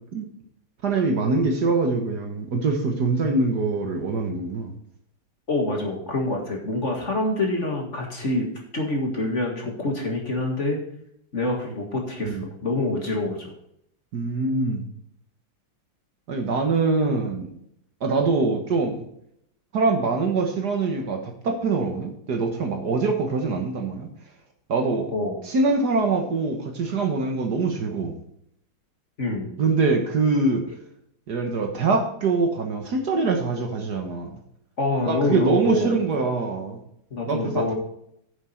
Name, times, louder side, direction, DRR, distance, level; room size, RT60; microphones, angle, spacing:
voice 1, 0.8-4.7 12.2-12.4 14.1-14.8 16.3-17.5 18.0-19.0 19.7-24.1 24.7-25.1 25.5-28.2 29.6-30.6 31.3-34.3 35.1-36.8 37.3-37.7, right 3 dB, 55° right, 3 dB, 1.7 m, -24 dB
voice 2, 5.5-8.5 8.7-10.8 11.3-13.5 25.1-25.4 29.2-29.5 34.8-36.0 37.1-37.7, left 2 dB, 35° left, 1 dB, 2.0 m, -26 dB
9.6 x 7.4 x 4.4 m, 0.73 s
omnidirectional pair, 2.3 m